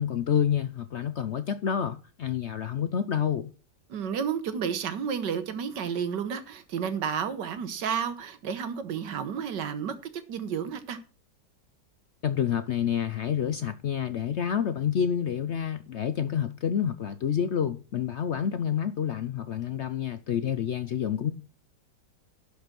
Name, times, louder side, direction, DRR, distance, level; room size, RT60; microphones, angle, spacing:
voice 1, 0.0-3.5 12.2-21.3, left 8 dB, 60° left, 0.7 m, -28 dB
voice 2, 3.9-11.0, right 7 dB, 90° right, 1.8 m, -31 dB
12.0 x 5.2 x 6.1 m
omnidirectional pair, 1.8 m